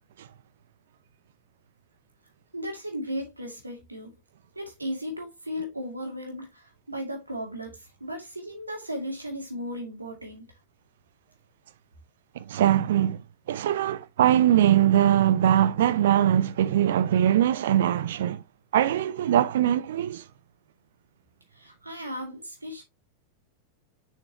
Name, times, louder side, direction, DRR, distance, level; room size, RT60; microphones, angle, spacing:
voice 1, 2.5-4.1 4.5-10.4 21.5-22.8, equal, 80° right, 2.2 m, -36 dB
voice 2, 12.4-13.2 13.5-18.4 18.7-20.2, right 11 dB, 60° right, 0.5 m, -22 dB
6.8 x 5.7 x 2.8 m
figure-of-eight pair, 90°, 0 cm